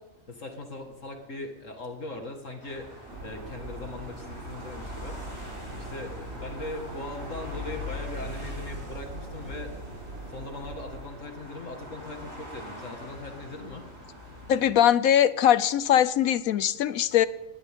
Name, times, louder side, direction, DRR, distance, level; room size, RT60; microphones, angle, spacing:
voice 1, 0.3-5.4 5.7-9.7 10.3-13.9, left 2 dB, 65° left, 3 dB, 2.4 m, -40 dB
sound 1, 2.6-14.7, left 2 dB, 20° right, 5.1 m, -42 dB
sound 2, 3.1-11.1, right 2 dB, 50° right, 1.8 m, -42 dB
voice 2, 14.5-17.3, left 10 dB, 80° left, 15 dB, 1.2 m, -21 dB
20.5 x 19.0 x 3.8 m, 0.97 s
omnidirectional pair, 1.4 m